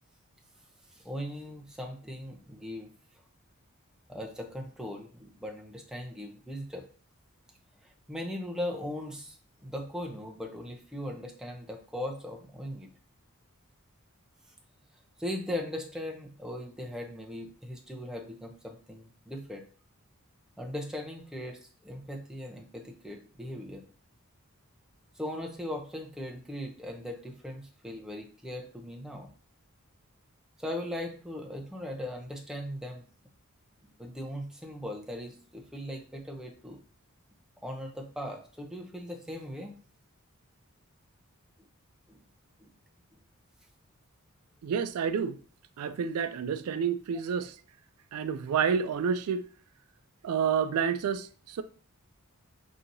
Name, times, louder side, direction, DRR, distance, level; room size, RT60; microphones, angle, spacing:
voice 1, 0.9-2.9 4.1-6.9 7.8-9.4 9.6-12.9 15.2-19.6 20.6-23.8 25.2-29.3 30.6-33.1 34.0-36.8 37.6-39.7 42.1-42.2 42.6-42.7, left 1 dB, 5° right, 0.6 m, -39 dB
voice 2, 44.6-45.4 45.8-47.6 48.1-49.5 50.2-51.6, right 7 dB, 85° right, 0.3 m, -29 dB
6.0 x 2.8 x 2.6 m
head